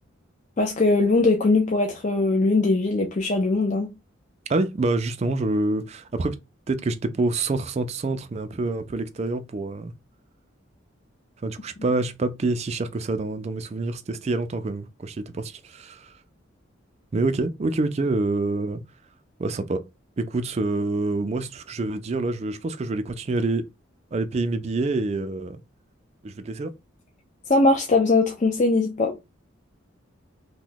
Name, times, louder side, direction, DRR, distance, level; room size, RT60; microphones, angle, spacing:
voice 1, 0.6-3.9 27.5-29.2, left 3 dB, 40° left, 0.4 m, -20 dB
voice 2, 4.5-6.4 6.7-9.9 11.4-16.2 17.1-18.8 19.4-19.8 20.2-23.7 24.1-25.6 26.2-26.7, right 2 dB, 35° right, 0.3 m, -26 dB
2.9 x 2.1 x 3.8 m
head